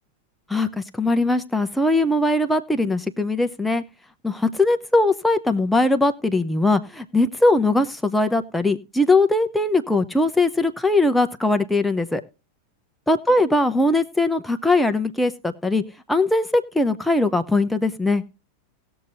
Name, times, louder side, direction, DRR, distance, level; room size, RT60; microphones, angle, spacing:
voice 1, 0.5-3.8 4.2-12.2 13.1-15.8 16.1-18.2, left 2 dB, 5° left, 7 dB, 0.9 m, -20 dB
19.0 x 6.8 x 2.7 m, 0.31 s
figure-of-eight pair, 90°, 0 cm